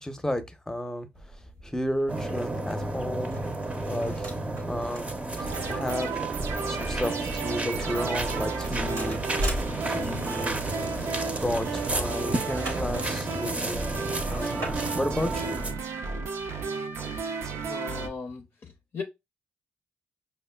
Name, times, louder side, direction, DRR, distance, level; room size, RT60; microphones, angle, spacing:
voice 1, 0.0-1.1 1.6-3.4 3.9-4.1 4.7-5.1 5.7-6.1 6.7-9.2 9.9-10.6 11.4-15.6, left 1 dB, 10° left, 0.7 m, -32 dB
sound 1, 1.1-16.6, right 1 dB, 85° right, 0.9 m, -41 dB
sound 2, 2.1-15.7, right 2 dB, 30° right, 0.6 m, -32 dB
sound 3, 5.4-18.1, right 4 dB, 70° right, 0.4 m, -33 dB
voice 2, 17.6-19.0, left 5 dB, 55° left, 0.5 m, -38 dB
5.4 x 2.1 x 2.2 m
hypercardioid pair, 40°, 5 cm